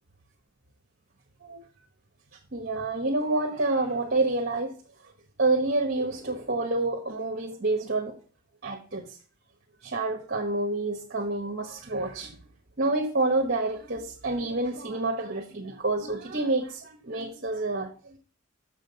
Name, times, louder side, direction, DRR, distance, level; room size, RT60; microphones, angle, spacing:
voice 1, 2.5-4.7 5.4-8.2 8.6-9.2 9.8-12.4 12.8-18.2, right 2 dB, 50° right, 1.2 m, -28 dB
7.5 x 6.7 x 5.3 m
head